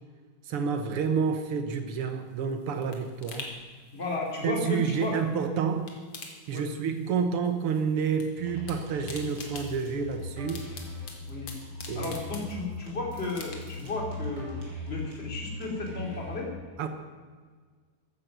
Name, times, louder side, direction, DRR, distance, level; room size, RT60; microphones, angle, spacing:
voice 1, 0.5-3.5 4.4-5.9 6.5-10.7 11.9-12.2 16.8-16.9, right 6 dB, 80° right, 7 dB, 2.0 m, -29 dB
sound 1, 2.1-5.4 5.7-7.2 7.4-8.3 8.5-12.9 13.3-13.9 14.3-14.4, left 4 dB, 85° left, 2.9 m, -45 dB
voice 2, 3.9-5.1 6.5-6.6 11.3-11.5 11.9-14.5 14.9-16.5, left 3 dB, 25° left, -1 dB, 3.2 m, -33 dB
sound 2, 8.4-16.4, left 1 dB, 55° right, 4.5 m, -40 dB
14.5 x 13.0 x 6.0 m, 1.5 s
omnidirectional pair, 2.4 m